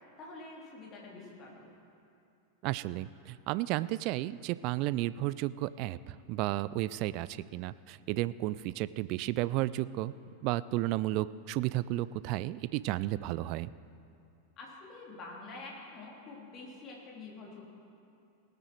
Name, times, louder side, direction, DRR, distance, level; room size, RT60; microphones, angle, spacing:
voice 1, 0.2-1.7 14.6-17.7, left 3 dB, 30° left, -2 dB, 3.0 m, -47 dB
voice 2, 2.6-10.1 10.4-13.7, right 16 dB, 45° right, 17 dB, 0.3 m, -33 dB
18.5 x 8.9 x 4.6 m, 2.6 s
figure-of-eight pair, 90°, 0 cm